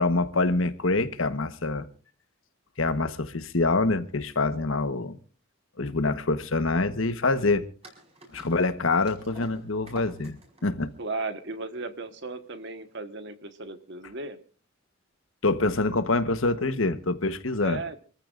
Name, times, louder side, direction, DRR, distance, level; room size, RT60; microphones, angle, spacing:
voice 1, 0.0-1.9 2.8-5.2 5.8-7.7 8.3-10.4 10.6-10.9 15.4-17.8, left 3 dB, 80° left, 1.2 m, -25 dB
sound 1, 7.8-12.9, right 1 dB, 30° right, 5.1 m, -49 dB
voice 2, 11.0-14.4 17.6-18.0, right 3 dB, 60° right, 1.5 m, -35 dB
27.0 x 14.5 x 2.5 m
head